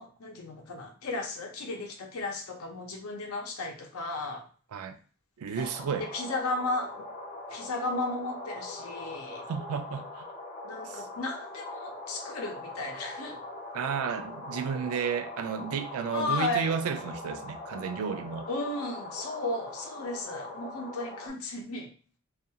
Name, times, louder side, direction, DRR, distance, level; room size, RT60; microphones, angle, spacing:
voice 1, 0.0-4.5 5.9-7.1 7.5-9.4 10.6-13.4 16.1-16.7 18.5-21.9, left 2 dB, 80° left, 0.6 m, -34 dB
voice 2, 5.4-6.1 9.5-10.3 10.8-11.1 13.7-18.5, right 6 dB, 80° right, 0.3 m, -32 dB
sound 1, 5.6-21.3, left 2 dB, 30° left, 0.7 m, -42 dB
2.4 x 2.3 x 2.7 m
head